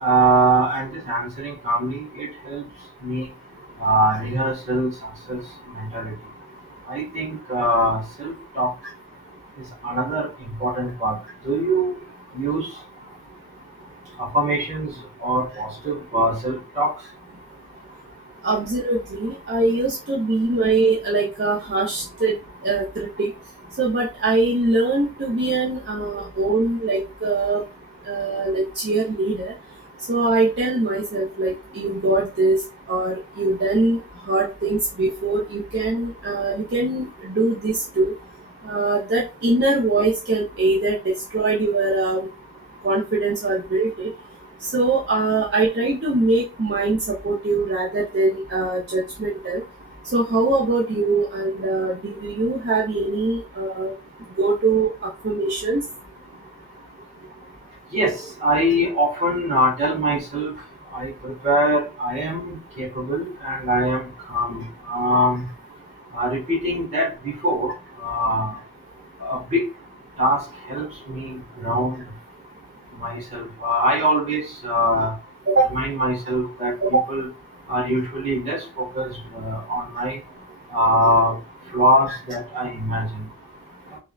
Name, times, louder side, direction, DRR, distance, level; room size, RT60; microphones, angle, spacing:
voice 1, 0.0-2.6 3.0-3.2 3.8-4.9 5.3-5.4 5.7-6.1 6.9-8.7 9.8-10.3 10.6-11.1 11.4-11.9 12.3-12.7 14.2-14.9 15.2-16.9 57.9-58.1 58.4-60.5 60.9-64.0 64.3-64.6 64.9-65.4 66.1-67.7 68.0-68.5 69.2-69.6 70.2-70.4 70.7-71.9 73.0-75.1 75.7-76.7 77.1-77.3 77.7-79.1 79.3-80.2 80.7-81.3 81.7-83.2, right 1 dB, 35° right, -3 dB, 1.4 m, -22 dB
voice 2, 18.4-22.4 22.6-23.3 23.8-27.6 28.0-29.5 30.1-32.6 32.9-34.0 34.3-38.1 38.6-42.3 42.8-44.1 44.6-49.6 50.1-53.9 54.4-55.8 75.5-75.7 76.8-77.0, right 2 dB, 60° right, -4 dB, 0.5 m, -22 dB
3.5 x 2.1 x 2.3 m, 0.29 s
head